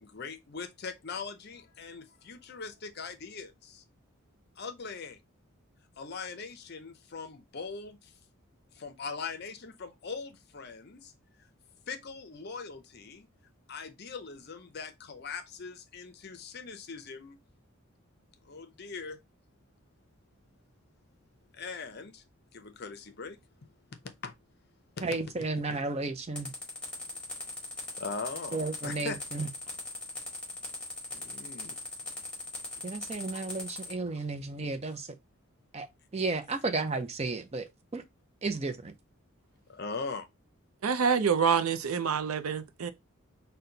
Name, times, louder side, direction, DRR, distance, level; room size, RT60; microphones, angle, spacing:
voice 1, 0.0-3.8 4.6-5.2 6.0-8.1 8.7-11.1 11.9-13.3 13.7-17.4 18.5-19.2 21.5-22.2 22.5-23.4 23.9-24.3 25.0-25.8 28.0-29.2 31.1-31.8 39.7-40.3, left 4 dB, 50° left, 0.6 m, -41 dB
voice 2, 25.0-26.5 28.5-29.5 32.8-35.1 35.7-35.9 36.1-37.7 37.9-38.0 38.4-38.9, right 3 dB, 30° right, 0.5 m, -33 dB
sound 1, 26.4-33.9, left 2 dB, 5° left, 1.7 m, -40 dB
voice 3, 40.8-42.9, right 6 dB, 80° right, 0.5 m, -27 dB
4.2 x 2.2 x 3.8 m
head